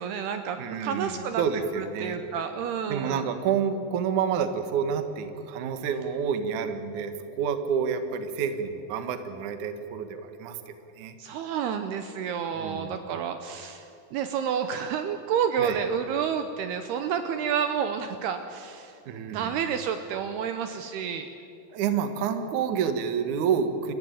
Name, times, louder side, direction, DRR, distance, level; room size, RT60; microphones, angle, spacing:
voice 1, 0.0-1.4 1.8-3.3 11.2-13.9 14.1-19.0 19.3-21.3, right 7 dB, 75° right, 8 dB, 2.7 m, -30 dB
voice 2, 0.6-2.2 2.9-11.2 12.6-13.0 15.6-15.8 19.1-19.6 21.7-23.9, right 7 dB, 60° right, 8 dB, 2.3 m, -29 dB
28.5 x 15.0 x 9.3 m, 2.6 s
omnidirectional pair, 5.1 m